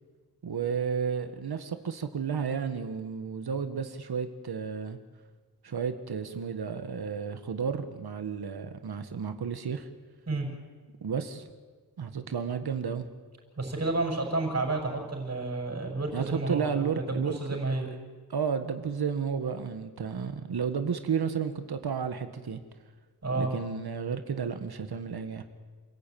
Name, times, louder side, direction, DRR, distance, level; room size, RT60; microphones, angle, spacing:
voice 1, 0.4-5.0 5.6-9.9 11.0-11.5 12.0-13.0 16.1-17.7 18.3-22.6 23.3-25.4, right 6 dB, 70° right, 8 dB, 1.6 m, -32 dB
voice 2, 13.6-17.9 23.2-23.5, right 2 dB, 40° right, 1 dB, 6.4 m, -30 dB
28.5 x 15.5 x 9.2 m, 1.4 s
wide cardioid pair, 135°, 39 cm